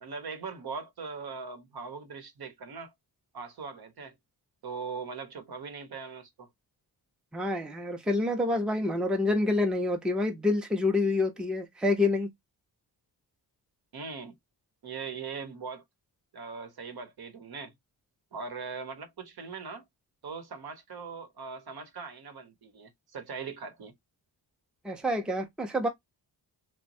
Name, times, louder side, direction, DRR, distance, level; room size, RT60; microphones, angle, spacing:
voice 1, 0.0-2.9 3.3-4.1 4.6-6.5 13.9-14.3 14.8-15.8 16.3-17.7 18.3-19.8 20.2-23.9, right 5 dB, 55° right, 0.9 m, -40 dB
voice 2, 7.3-12.3 24.8-25.9, left 2 dB, ahead, 0.6 m, -27 dB
3.0 x 2.2 x 2.6 m
cardioid pair, 80°, 44 cm